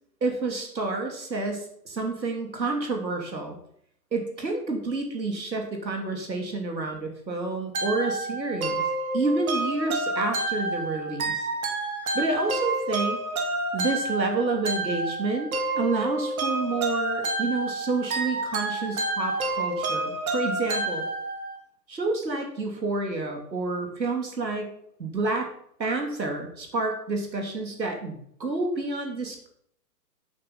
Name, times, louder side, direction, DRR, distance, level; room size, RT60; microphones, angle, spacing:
voice 1, 0.2-3.6 4.1-8.8 9.1-11.5 12.1-13.2 13.7-21.0 21.9-24.7 25.0-25.5 25.8-29.5, right 3 dB, 90° right, 3 dB, 3.0 m, -29 dB
sound 1, 7.7-21.6, right 2 dB, 55° right, 2.8 m, -29 dB
9.0 x 9.0 x 5.6 m, 0.69 s
hypercardioid pair, 140°, 50 cm